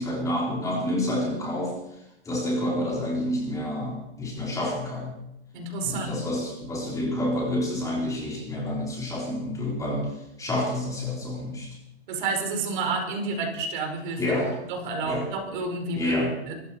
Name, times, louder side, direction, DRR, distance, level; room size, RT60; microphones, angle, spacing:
voice 1, 0.0-5.1 5.8-11.8 14.2-14.6 15.0-15.3 16.0-16.3, left 1 dB, 10° left, -2 dB, 3.8 m, -29 dB
voice 2, 5.5-6.2 12.1-14.4 14.7-16.1 16.5-16.6, right 3 dB, 50° right, 3 dB, 4.8 m, -30 dB
24.0 x 14.0 x 4.3 m, 0.85 s
hypercardioid pair, 155°, 33 cm